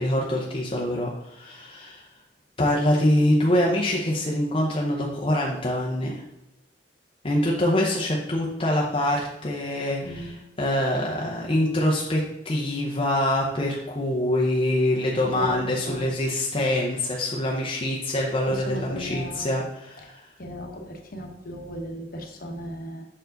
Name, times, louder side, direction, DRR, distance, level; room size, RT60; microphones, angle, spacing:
voice 1, 0.0-2.0 2.6-6.1 7.2-10.3 10.6-20.1, left 1 dB, 30° left, -3 dB, 0.7 m, -24 dB
voice 2, 10.0-10.4 15.3-16.1 18.5-19.5 20.0-20.1 20.4-23.1, equal, 50° left, 2 dB, 1.0 m, -36 dB
6.4 x 4.6 x 3.9 m, 0.91 s
head